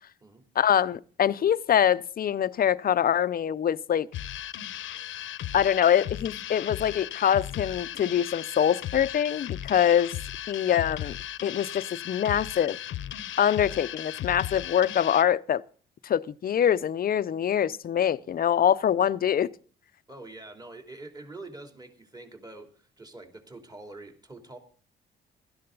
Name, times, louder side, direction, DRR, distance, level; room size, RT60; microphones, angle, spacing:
voice 1, 0.6-4.1 5.5-10.1 10.5-11.2 11.4-12.8 13.4-15.6 16.0-19.5, left 9 dB, 50° left, 0.7 m, -24 dB
sound 1, 4.1-15.2, left 12 dB, 75° left, 0.9 m, -36 dB
voice 2, 17.9-18.3 20.1-24.6, right 2 dB, 20° right, 3.2 m, -45 dB
16.5 x 13.0 x 3.9 m
cardioid pair, 90°, 20 cm